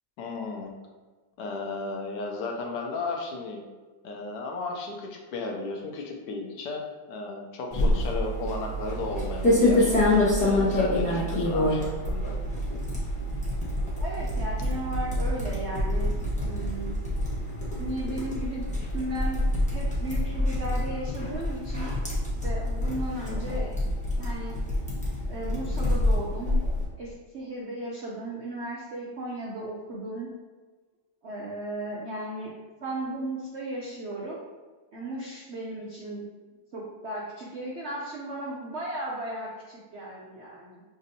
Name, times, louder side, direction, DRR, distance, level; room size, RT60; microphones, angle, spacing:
voice 1, 0.2-0.7 1.4-3.6 4.0-6.8 7.1-9.9 10.4-12.4 23.3-23.7, left 3 dB, 75° left, 1 dB, 1.2 m, -34 dB
sound 1, 7.7-26.8, left 1 dB, 10° left, 0.5 m, -27 dB
voice 2, 14.0-16.1 16.5-17.0 17.8-18.6 18.9-21.9 22.4-23.7 24.2-24.6 25.3-26.6 27.0-30.3 31.2-32.5 32.8-34.4 34.9-36.2 36.7-40.8, right 1 dB, 70° right, -4 dB, 0.6 m, -35 dB
6.0 x 2.7 x 2.7 m, 1.3 s
omnidirectional pair, 2.0 m